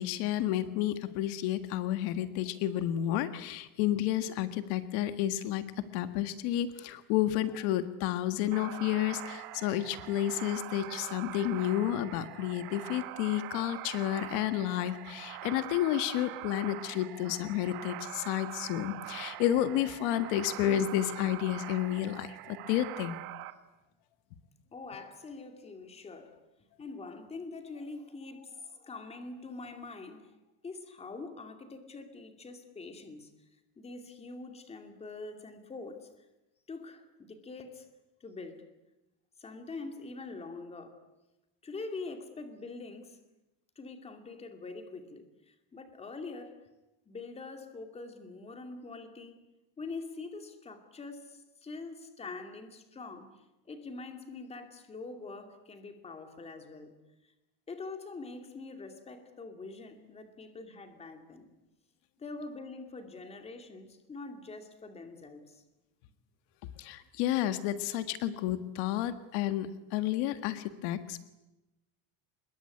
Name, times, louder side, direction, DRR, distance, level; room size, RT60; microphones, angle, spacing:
voice 1, 0.0-23.2 66.8-71.2, left 12 dB, 75° left, 11 dB, 1.7 m, -31 dB
sound 1, 8.5-23.5, right 15 dB, 60° right, 2.0 m, -43 dB
voice 2, 24.7-26.4 26.8-30.4 30.6-33.3 33.8-36.1 36.7-37.9 38.2-38.7 39.4-41.0 41.6-43.2 43.8-46.7 47.1-49.4 49.8-57.0 57.2-57.3 57.7-61.5 62.2-65.6, left 3 dB, 15° left, 6 dB, 2.5 m, -44 dB
25.5 x 22.0 x 9.7 m, 0.98 s
cardioid pair, 180°, 38 cm